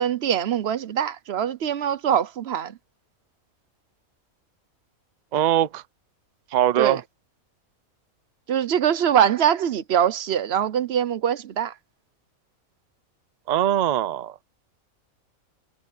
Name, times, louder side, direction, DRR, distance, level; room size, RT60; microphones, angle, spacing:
voice 1, 0.0-2.8 6.8-7.0 8.5-11.7, right 9 dB, 55° right, 0.9 m, -23 dB
voice 2, 5.3-5.8 6.5-7.0 13.5-14.4, right 11 dB, 80° right, 0.4 m, -21 dB
omnidirectional pair, 1.5 m